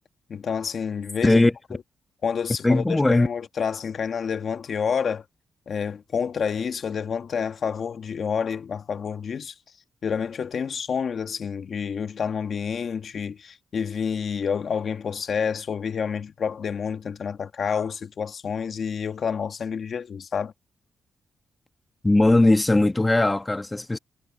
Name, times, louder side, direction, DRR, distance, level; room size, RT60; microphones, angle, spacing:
voice 1, 0.3-1.4 2.2-5.2 5.7-9.5 10.0-20.5, left 6 dB, 60° left, 1.5 m, -28 dB
voice 2, 2.6-3.3 22.0-24.0, left 2 dB, 20° left, 1.3 m, -19 dB
cardioid pair, 75°, 0 cm